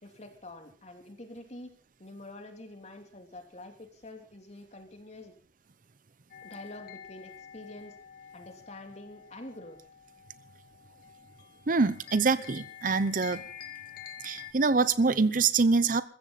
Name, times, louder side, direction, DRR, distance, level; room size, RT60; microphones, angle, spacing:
voice 1, 0.0-1.7 2.0-5.3 6.4-8.0 8.3-9.8, left 1 dB, 40° left, 5 dB, 3.1 m, -46 dB
sound 1, 6.3-14.5, left 9 dB, 60° left, 2.0 m, -48 dB
voice 2, 11.7-13.4 14.2-16.0, right 4 dB, 50° right, 15 dB, 0.8 m, -25 dB
21.5 x 15.0 x 4.1 m, 0.41 s
head